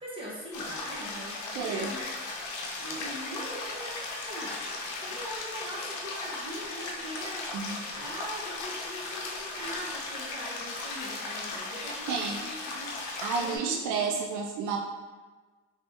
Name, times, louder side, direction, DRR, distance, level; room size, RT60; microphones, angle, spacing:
voice 1, 0.0-2.1 2.8-7.5 7.9-13.1 13.4-14.2, equal, 15° right, -6 dB, 1.3 m, -41 dB
sound 1, 0.5-13.6, left 3 dB, 80° left, 0.7 m, -37 dB
voice 2, 1.5-1.9 7.5-7.8 12.1-12.4 13.2-14.8, right 5 dB, 80° right, 1 dB, 0.5 m, -31 dB
3.3 x 3.2 x 2.8 m, 1.3 s
cardioid pair, 90°, 30 cm